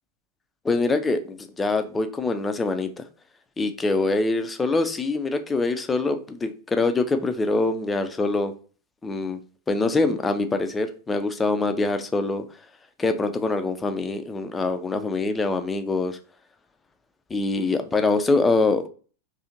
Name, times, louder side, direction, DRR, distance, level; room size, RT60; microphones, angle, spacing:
voice 1, 0.6-2.9 3.6-8.5 9.0-9.4 9.7-12.4 13.0-16.2 17.3-18.9, left 3 dB, 15° left, 0.3 m, -24 dB
2.7 x 2.5 x 2.6 m
figure-of-eight pair, 90°, 0 cm